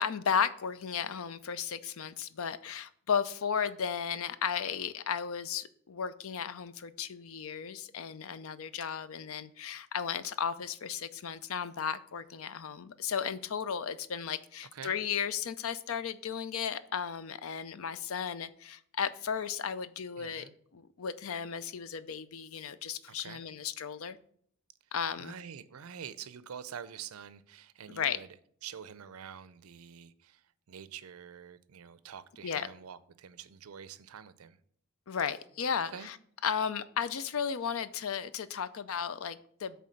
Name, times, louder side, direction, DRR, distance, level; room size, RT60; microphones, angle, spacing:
voice 1, 0.0-20.5 20.7-24.2 24.9-25.3 27.9-28.2 32.4-32.7 35.1-36.2 36.4-39.8, left 7 dB, 70° left, 0.5 m, -34 dB
voice 2, 20.2-20.6 23.1-23.4 25.2-28.3 28.6-34.6 35.9-36.1, right 8 dB, 80° right, 0.5 m, -46 dB
8.4 x 3.5 x 6.3 m
head